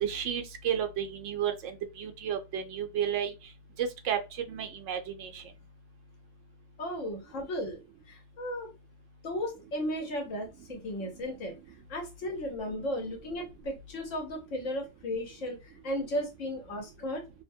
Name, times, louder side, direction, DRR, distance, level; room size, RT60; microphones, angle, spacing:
voice 1, 0.0-3.3 3.8-4.2 4.5-5.4, right 9 dB, 80° right, 0.9 m, -32 dB
voice 2, 6.8-7.8 8.1-8.7 9.2-11.6 11.9-15.6 15.8-17.2, left 1 dB, 85° left, 1.3 m, -35 dB
2.8 x 2.1 x 2.6 m
omnidirectional pair, 1.3 m